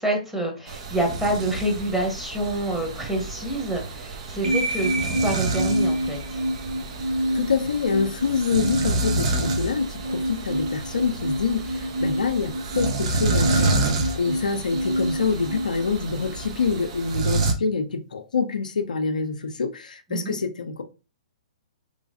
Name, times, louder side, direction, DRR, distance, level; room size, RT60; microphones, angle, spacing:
voice 1, 0.0-6.4 20.1-20.4, right 1 dB, 5° right, 1.1 m, -27 dB
sound 1, 0.7-17.5, right 3 dB, 55° right, 0.8 m, -29 dB
sound 2, 4.4-16.5, equal, 75° right, 1.0 m, -28 dB
voice 2, 7.3-20.8, left 5 dB, 80° left, 0.5 m, -26 dB
3.1 x 3.1 x 2.6 m
hypercardioid pair, 130°, 4 cm